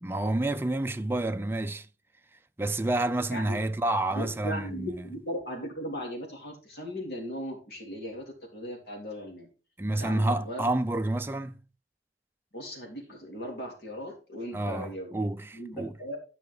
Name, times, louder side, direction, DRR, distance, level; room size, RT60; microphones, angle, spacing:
voice 1, 0.0-1.9 2.6-5.1 9.8-11.6 14.5-15.9, right 2 dB, 15° right, 0.5 m, -29 dB
voice 2, 4.1-9.5 10.0-10.6 12.5-15.2 15.5-16.2, equal, 65° left, 3.6 m, -37 dB
11.0 x 5.8 x 3.8 m
head